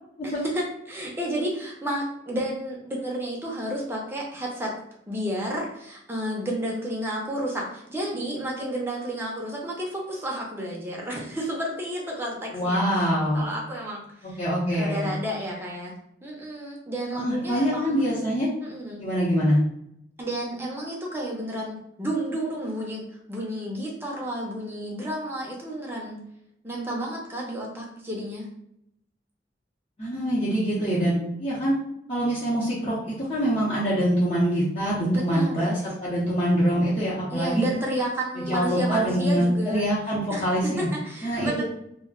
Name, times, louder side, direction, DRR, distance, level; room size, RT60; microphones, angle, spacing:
voice 1, 0.2-4.7 5.1-12.8 13.3-14.4 14.7-15.9 16.2-18.0 18.6-19.0 20.2-26.2 26.6-28.5 30.8-31.3 35.1-35.7 37.3-39.8 40.3-41.6, right 1 dB, 10° right, -2 dB, 0.6 m, -31 dB
voice 2, 12.5-13.5 14.4-15.1 17.2-18.5 19.0-19.6 30.0-31.7 32.1-37.7 38.4-40.9 41.2-41.6, equal, 35° left, -9 dB, 0.8 m, -24 dB
2.4 x 2.2 x 3.6 m, 0.76 s
head